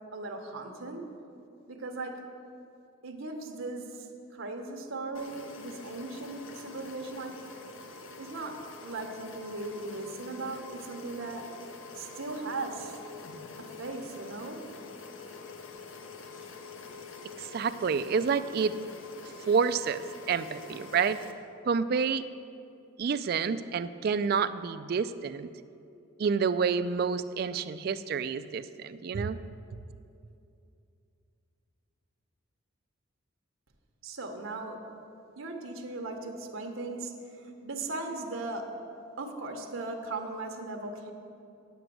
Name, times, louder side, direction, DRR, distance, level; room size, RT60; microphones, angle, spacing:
voice 1, 0.1-1.0 1.7-2.2 3.0-4.1 4.3-7.4 8.2-8.6 8.8-11.4 11.9-13.0 13.6-14.6 34.0-34.8 35.4-37.1 37.4-38.7 39.2-41.1, right 2 dB, 80° right, 4 dB, 1.0 m, -38 dB
sound 1, 5.1-21.3, left 3 dB, 75° left, 0.7 m, -46 dB
voice 2, 17.4-18.7 19.5-21.2 21.6-22.2 23.0-25.5 26.2-29.4, right 6 dB, 50° right, 13 dB, 0.3 m, -28 dB
9.3 x 6.0 x 7.7 m, 2.6 s
head